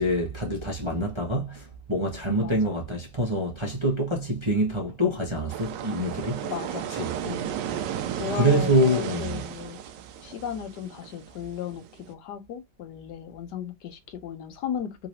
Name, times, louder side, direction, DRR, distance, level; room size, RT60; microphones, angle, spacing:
voice 1, 0.0-6.4 7.0-7.1 8.4-9.4, right 1 dB, 20° right, 0.8 m, -25 dB
sound 1, 5.5-12.1, right 9 dB, 80° right, 1.2 m, -34 dB
voice 2, 6.4-6.9 7.2-7.5 8.2-9.8 10.2-15.1, left 9 dB, 75° left, 1.3 m, -35 dB
3.8 x 3.0 x 2.6 m
omnidirectional pair, 1.9 m